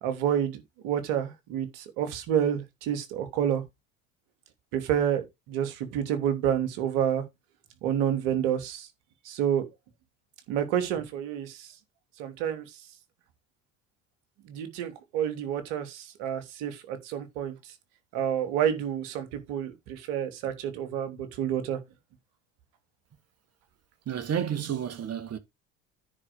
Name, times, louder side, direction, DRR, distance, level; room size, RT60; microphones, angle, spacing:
voice 1, 0.0-3.6 4.7-7.2 7.8-8.9 9.2-9.7 10.5-11.7 12.2-12.6 14.4-17.5 18.1-21.8, right 9 dB, 65° right, 3.2 m, -29 dB
voice 2, 24.1-25.4, right 9 dB, 40° right, 2.4 m, -31 dB
9.9 x 4.9 x 6.5 m
hypercardioid pair, 75°, 39 cm